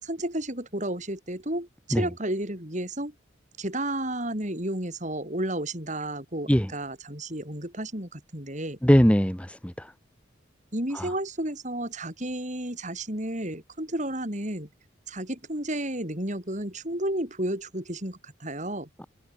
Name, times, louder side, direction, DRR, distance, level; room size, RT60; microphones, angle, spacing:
voice 1, 0.0-3.1 3.6-8.8 10.7-14.7 15.1-18.9, right 1 dB, 35° right, 6.1 m, -32 dB
voice 2, 8.8-9.9 10.9-11.1, equal, 5° left, 1.7 m, -21 dB
head